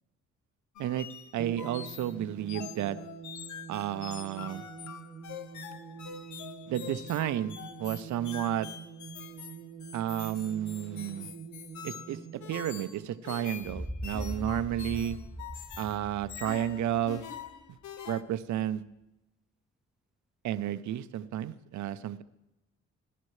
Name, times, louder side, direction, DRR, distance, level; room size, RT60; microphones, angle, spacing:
sound 1, 0.8-18.2, left 9 dB, 70° left, 0.9 m, -45 dB
voice 1, 1.3-3.0 3.7-4.7 6.7-8.7 9.9-11.3 11.8-15.2 15.8-17.2 18.1-18.8 20.4-22.2, right 11 dB, 70° right, 13 dB, 0.7 m, -32 dB
sound 2, 1.4-14.2, right 7 dB, 25° right, 0.9 m, -46 dB
sound 3, 13.6-17.5, equal, ahead, 0.4 m, -40 dB
19.5 x 11.0 x 3.2 m, 0.92 s
cardioid pair, 90°, 30 cm